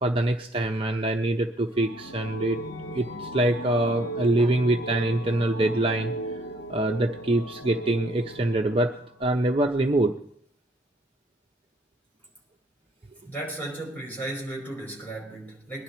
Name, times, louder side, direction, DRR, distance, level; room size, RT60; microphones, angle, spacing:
voice 1, 0.0-2.6 2.9-6.1 6.7-8.9 9.2-10.1, right 1 dB, 30° right, 0.7 m, -24 dB
sound 1, 1.7-9.2, right 1 dB, 85° left, 0.9 m, -37 dB
voice 2, 13.3-15.8, right 2 dB, 10° left, 4.9 m, -35 dB
21.5 x 11.0 x 4.4 m
head